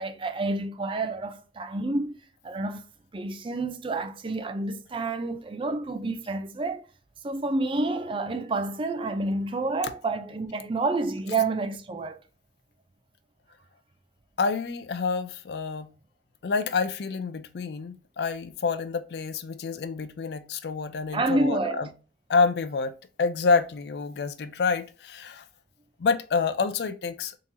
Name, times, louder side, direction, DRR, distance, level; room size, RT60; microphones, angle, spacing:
voice 1, 0.0-2.2 2.4-2.8 3.1-6.9 7.2-12.2 21.1-21.9, right 2 dB, 30° right, 0.4 m, -29 dB
voice 2, 14.4-15.9 16.4-21.9 22.3-25.4 26.0-27.4, left 4 dB, 65° left, 0.4 m, -28 dB
3.7 x 2.9 x 2.6 m
head